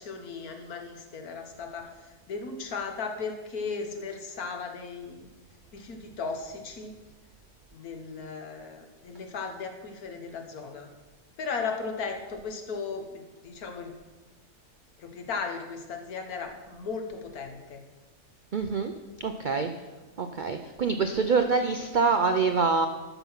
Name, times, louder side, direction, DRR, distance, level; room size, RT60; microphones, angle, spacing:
voice 1, 0.0-5.3 5.7-6.9 7.7-10.9 11.4-14.0 15.0-17.8, left 5 dB, 75° left, 4 dB, 1.6 m, -36 dB
voice 2, 18.5-18.9 19.2-19.7 20.2-22.9, right 4 dB, 75° right, 7 dB, 0.4 m, -25 dB
12.5 x 5.9 x 5.6 m, 1.2 s
omnidirectional pair, 1.6 m